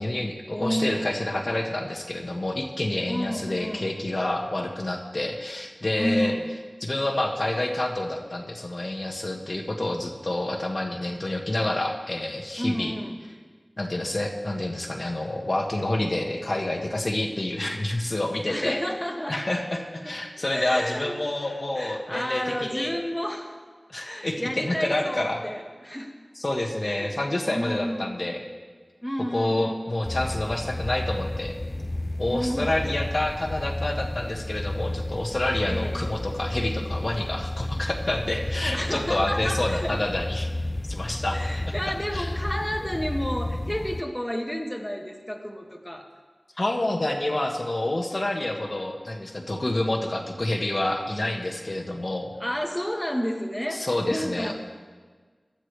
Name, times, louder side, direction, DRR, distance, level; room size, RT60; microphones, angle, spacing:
voice 1, 0.0-6.4 6.8-12.9 13.8-18.8 19.3-22.9 23.9-25.4 26.4-28.4 29.3-31.5 32.2-40.5 40.9-41.4 41.7-41.8 42.1-42.3 46.6-52.3 53.7-54.5, left 1 dB, 55° left, 1 dB, 1.4 m, -28 dB
voice 2, 0.5-1.1 3.1-3.9 5.9-6.5 12.6-13.2 18.5-19.4 20.0-20.1 20.5-23.5 24.0-26.1 26.8-27.1 27.5-28.1 29.0-29.7 32.3-32.8 35.7-36.1 38.7-40.0 41.3-46.1 52.4-54.5, equal, 10° left, 1 dB, 1.5 m, -31 dB
sound 1, 30.1-44.0, left 1 dB, 40° left, 0.3 m, -32 dB
18.5 x 12.0 x 3.3 m, 1.5 s
wide cardioid pair, 45°, 0 cm